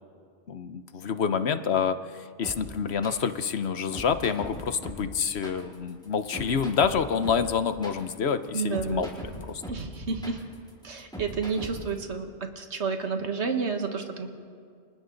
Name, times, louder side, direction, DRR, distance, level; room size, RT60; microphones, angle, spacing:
voice 1, 0.5-9.1 9.4-9.6, left 6 dB, 70° left, 10 dB, 1.1 m, -27 dB
sound 1, 2.4-12.0, equal, 5° left, 4.7 m, -40 dB
voice 2, 8.5-9.1 9.7-10.4 10.8-14.3, right 5 dB, 70° right, 5 dB, 1.8 m, -30 dB
29.5 x 26.5 x 4.0 m, 2.2 s
omnidirectional pair, 1.2 m